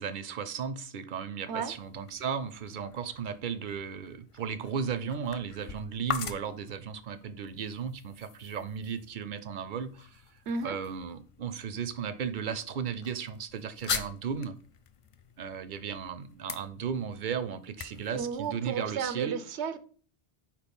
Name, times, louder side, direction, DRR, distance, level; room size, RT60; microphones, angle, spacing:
voice 1, 0.0-10.2 10.6-14.6 15.4-19.4, right 7 dB, 55° right, 0.6 m, -35 dB
sound 1, 1.4-19.2, left 6 dB, 55° left, 0.3 m, -43 dB
voice 2, 18.2-19.8, right 6 dB, 85° right, 0.9 m, -33 dB
4.5 x 4.3 x 5.3 m
omnidirectional pair, 1.1 m